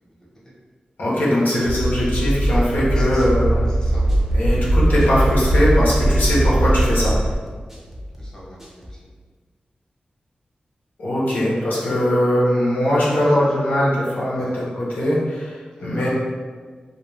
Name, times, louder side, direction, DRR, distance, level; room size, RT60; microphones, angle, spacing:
voice 1, 1.0-3.6 4.3-7.1 11.0-16.1, equal, 85° left, -7 dB, 0.7 m, -20 dB
sound 1, 1.6-7.3, right 1 dB, 80° right, 0.7 m, -19 dB
sound 2, 2.3-9.0, equal, 10° right, 0.6 m, -39 dB
voice 2, 2.9-3.4 3.7-4.4 8.2-9.0 13.0-13.5 14.3-14.6 15.8-16.1, equal, 20° left, -7 dB, 0.8 m, -39 dB
2.3 x 2.2 x 3.1 m, 1.5 s
wide cardioid pair, 80°, 3 cm